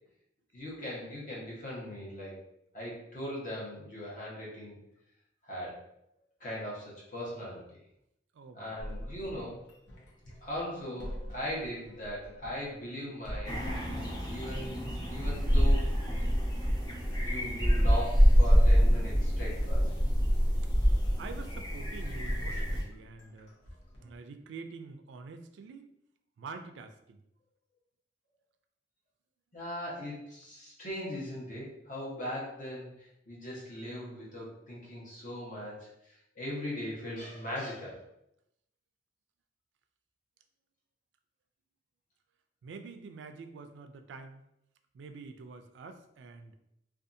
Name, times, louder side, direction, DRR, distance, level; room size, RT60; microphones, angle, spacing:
voice 1, 0.5-2.4 2.7-4.8 5.4-5.8 6.4-7.8 8.5-9.7 10.4-13.9 14.3-15.9 17.2-19.9 29.5-38.0, equal, 45° left, -5 dB, 1.0 m, -39 dB
voice 2, 8.3-8.8 9.0-9.1 21.2-23.5 24.0-25.9 26.4-27.2 42.6-44.4 44.9-46.5, right 4 dB, 75° right, 7 dB, 0.3 m, -46 dB
sound 1, 8.8-24.2, equal, 85° left, 0.7 m, -46 dB
sound 2, 13.4-22.8, equal, 20° left, 0.6 m, -26 dB
2.6 x 2.3 x 2.5 m, 0.80 s
head